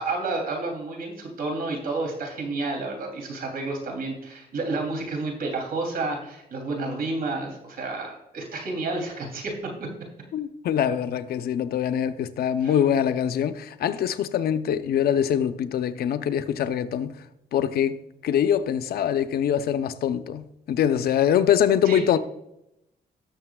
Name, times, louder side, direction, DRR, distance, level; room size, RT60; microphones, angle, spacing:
voice 1, 0.0-9.9 12.6-12.8 21.8-22.0, right 3 dB, 75° right, 2.8 m, -30 dB
voice 2, 10.3-17.1 17.5-22.2, left 9 dB, 85° left, 0.6 m, -24 dB
18.0 x 6.8 x 2.3 m
cardioid pair, 105°, 16 cm